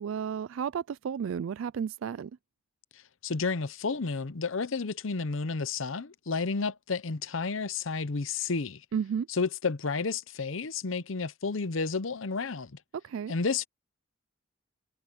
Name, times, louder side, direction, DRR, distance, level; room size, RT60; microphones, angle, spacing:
voice 1, 0.0-2.3 8.9-9.3 13.0-13.3, right 7 dB, 65° right, 0.3 m, -32 dB
voice 2, 3.2-8.8 9.3-12.7 13.3-13.7, left 4 dB, 65° left, 0.8 m, -31 dB
head